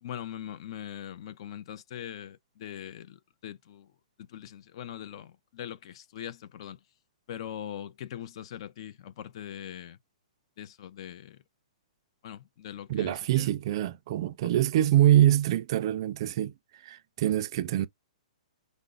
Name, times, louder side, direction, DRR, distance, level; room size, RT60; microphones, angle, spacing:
voice 1, 0.0-3.9 4.2-6.8 7.3-10.0 10.6-11.4 12.2-13.5 14.4-14.5, left 10 dB, 45° left, 0.4 m, -41 dB
voice 2, 12.9-17.9, right 12 dB, 40° right, 0.3 m, -25 dB
4.9 x 2.0 x 2.4 m
hypercardioid pair, 160°, 4 cm